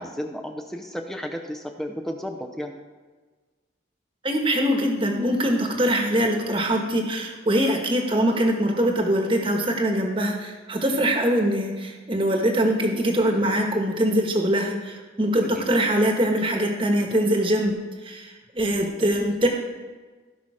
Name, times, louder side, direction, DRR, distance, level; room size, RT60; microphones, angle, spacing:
voice 1, 0.0-2.8 15.5-15.6, equal, ahead, 3 dB, 0.6 m, -33 dB
voice 2, 4.2-17.7 18.0-19.5, equal, 25° right, 2 dB, 1.3 m, -23 dB
16.5 x 5.7 x 4.9 m, 1.4 s
head